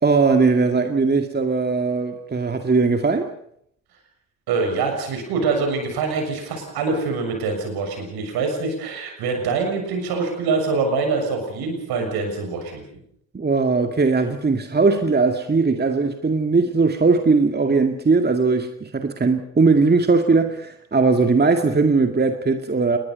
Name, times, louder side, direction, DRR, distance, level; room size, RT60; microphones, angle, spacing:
voice 1, 0.0-3.3 13.3-23.0, right 4 dB, 25° right, 2.2 m, -19 dB
voice 2, 4.5-12.8, right 4 dB, 65° right, 6.8 m, -24 dB
29.0 x 20.5 x 5.5 m
figure-of-eight pair, 45°, 41 cm